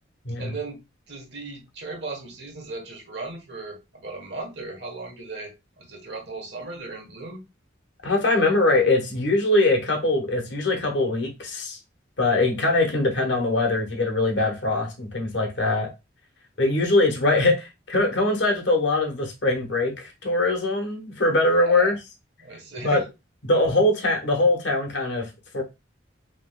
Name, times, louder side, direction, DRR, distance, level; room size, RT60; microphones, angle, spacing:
voice 1, 0.4-0.8 1.1-5.5 5.8-7.4 21.6-22.0 22.4-23.0, right 3 dB, 60° right, 1.4 m, -36 dB
voice 2, 8.0-11.8 12.2-15.9 16.6-22.0 22.8-23.0 23.4-25.2 25.5-25.6, left 2 dB, 65° left, 1.2 m, -22 dB
5.1 x 3.3 x 2.3 m
head